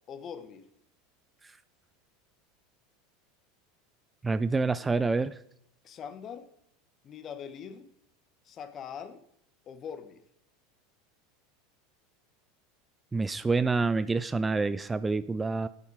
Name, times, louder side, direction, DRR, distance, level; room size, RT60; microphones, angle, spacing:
voice 1, 0.1-0.6 5.8-6.5 7.0-7.9 8.4-9.2 9.6-10.2, left 7 dB, 40° left, 11 dB, 1.3 m, -42 dB
voice 2, 4.2-5.4 13.1-15.7, right 3 dB, 15° right, 15 dB, 0.4 m, -27 dB
8.5 x 8.3 x 5.0 m, 0.72 s
hypercardioid pair, 85°, 0 cm